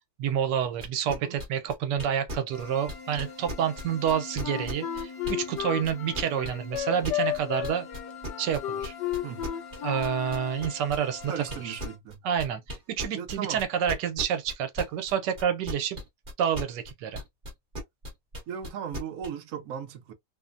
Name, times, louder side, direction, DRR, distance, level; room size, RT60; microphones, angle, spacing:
voice 1, 0.2-7.9 8.4-8.9 9.8-11.8 12.2-16.0 16.4-17.2, right 8 dB, 80° right, 1.2 m, -29 dB
sound 1, 0.8-5.6 5.9-15.1 15.4-19.3, left 1 dB, 35° right, 1.0 m, -36 dB
sound 2, 2.5-12.0, left 5 dB, 30° left, 0.4 m, -45 dB
Wind instrument woodwind instrument, 4.4-10.7, left 11 dB, 80° left, 1.2 m, -33 dB
voice 2, 11.3-12.2 13.2-13.6 18.5-20.1, right 8 dB, 65° right, 0.9 m, -37 dB
2.9 x 2.0 x 2.4 m
omnidirectional pair, 1.9 m